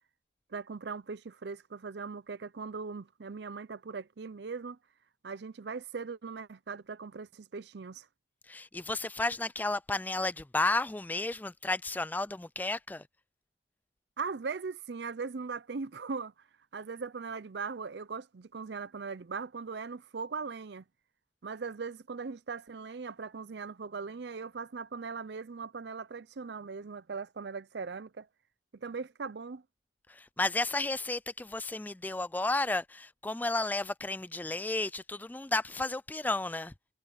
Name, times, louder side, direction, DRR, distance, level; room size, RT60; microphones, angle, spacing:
voice 1, 0.5-4.8 5.2-8.1 14.2-16.3 16.7-20.8 21.4-28.3 28.7-29.6, right 5 dB, 65° right, 0.5 m, -39 dB
voice 2, 8.5-13.0 30.1-36.7, left 2 dB, 10° left, 0.3 m, -32 dB
head